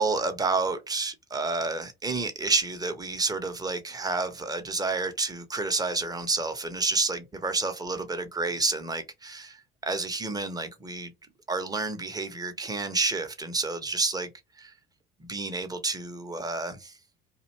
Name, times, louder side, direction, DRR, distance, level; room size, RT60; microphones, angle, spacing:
voice 1, 0.0-11.1 11.5-14.3 14.6-14.7 15.3-17.0, right 3 dB, 10° right, 0.6 m, -29 dB
2.5 x 2.1 x 3.0 m
figure-of-eight pair, 60°, 32 cm